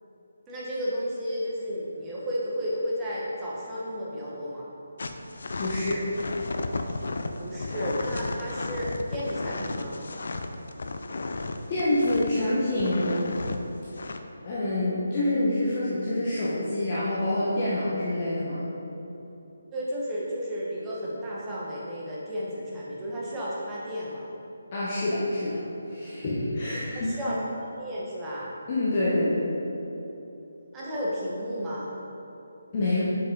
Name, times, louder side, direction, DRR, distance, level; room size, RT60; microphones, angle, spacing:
voice 1, 0.5-4.7 7.3-10.0 19.7-24.3 26.9-28.5 30.7-31.9, equal, 10° right, -7 dB, 1.1 m, -33 dB
sound 1, 5.0-12.5 12.8-13.6 13.9-14.2, left 3 dB, 60° left, 0.5 m, -33 dB
voice 2, 5.6-6.1 11.7-13.3 14.4-18.7 24.7-25.6 25.9-27.2 28.7-29.5 32.7-33.0, left 1 dB, 30° left, -9 dB, 1.0 m, -26 dB
7.2 x 5.5 x 3.9 m, 3.0 s
hypercardioid pair, 170°, 0 cm